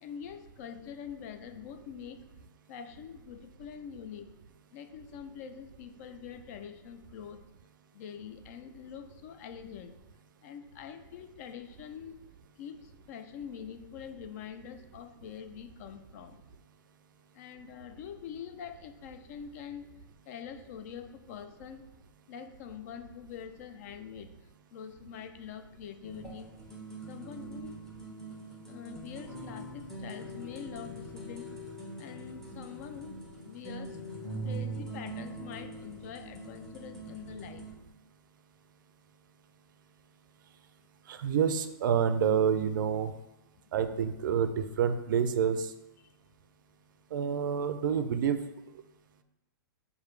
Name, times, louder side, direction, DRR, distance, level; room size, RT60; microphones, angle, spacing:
voice 1, 0.0-2.2 2.7-4.3 4.7-7.4 7.9-10.0 10.4-12.2 12.6-16.4 17.3-19.9 20.3-21.9 22.3-24.3 24.7-26.5 27.1-27.8 28.7-31.5 32.0-33.2 33.4-34.0 34.4-37.7 46.0-46.1, left 8 dB, 45° left, 9 dB, 0.4 m, -45 dB
sound 1, 26.0-37.7, right 2 dB, 5° left, 0.9 m, -42 dB
voice 2, 41.1-43.1 43.7-44.5 44.8-45.6 47.1-48.4, right 7 dB, 60° right, 10 dB, 0.4 m, -27 dB
4.7 x 2.6 x 3.1 m, 0.95 s
hypercardioid pair, 130°, 12 cm